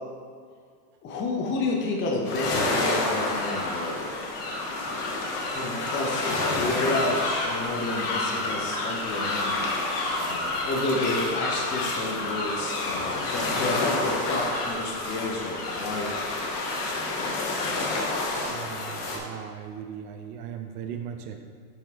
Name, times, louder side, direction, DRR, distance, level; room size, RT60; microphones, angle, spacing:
voice 1, 1.0-4.2 5.6-9.6 10.2-16.2, left 2 dB, 25° left, -1 dB, 0.7 m, -30 dB
sound 1, 2.3-19.2, left 2 dB, 70° left, 1.3 m, -29 dB
voice 2, 18.4-21.4, right 8 dB, 75° right, 6 dB, 0.8 m, -38 dB
5.5 x 5.4 x 3.5 m, 2.1 s
supercardioid pair, 140°, 48 cm